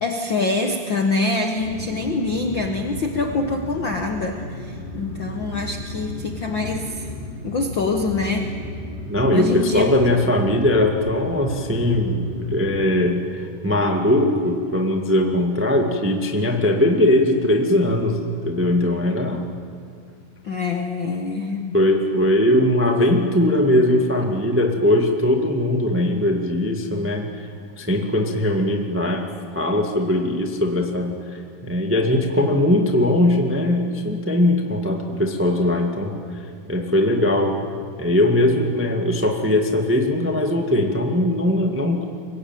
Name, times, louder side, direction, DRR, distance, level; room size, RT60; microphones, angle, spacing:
voice 1, 0.0-7.1 7.4-8.6 9.3-10.0 20.4-21.7, left 3 dB, 65° left, 4 dB, 1.2 m, -25 dB
sound 1, 1.6-12.9, left 1 dB, 15° left, 5.1 m, -34 dB
voice 2, 9.1-19.4 21.7-27.5 27.8-29.3 29.5-36.1 36.7-37.5 38.0-42.1, left 1 dB, 10° right, 2 dB, 0.6 m, -20 dB
23.5 x 21.0 x 9.1 m, 2.3 s
omnidirectional pair, 4.0 m